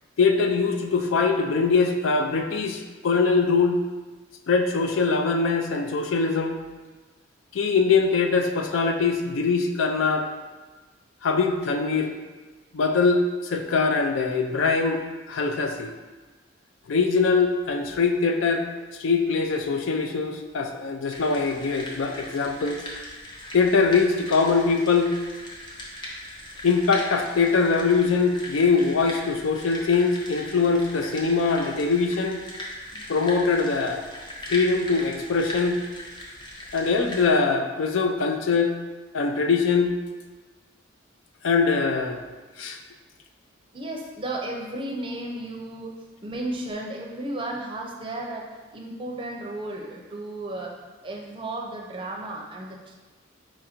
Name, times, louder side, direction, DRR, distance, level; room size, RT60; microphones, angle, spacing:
voice 1, 0.2-3.8 4.5-6.6 7.5-10.3 11.2-12.1 12.7-15.0 15.3-15.9 16.9-18.7 19.0-22.8 23.5-25.1 26.6-32.4 33.1-34.1 34.5-35.8 36.7-38.7 39.1-40.0 41.4-42.2 42.6-42.8, left 4 dB, 75° left, 5 dB, 0.4 m, -22 dB
sound 1, 21.1-37.3, left 1 dB, 25° left, 0.7 m, -39 dB
voice 2, 43.7-45.9 46.2-52.9, right 1 dB, 25° right, -1 dB, 0.5 m, -34 dB
4.4 x 2.5 x 4.3 m, 1.3 s
head